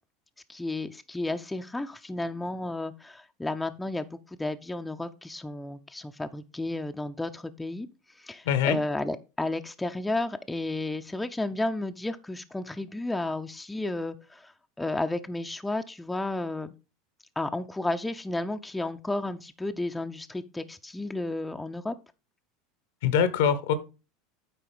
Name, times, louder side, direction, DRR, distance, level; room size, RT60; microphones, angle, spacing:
voice 1, 0.5-7.9 8.2-14.5 14.8-16.7 17.4-22.0, left 2 dB, 10° left, 7 dB, 0.6 m, -32 dB
voice 2, 8.4-8.8 23.0-23.7, left 8 dB, 70° left, 13 dB, 1.0 m, -23 dB
9.1 x 4.2 x 4.9 m, 0.30 s
hypercardioid pair, 85°, 0 cm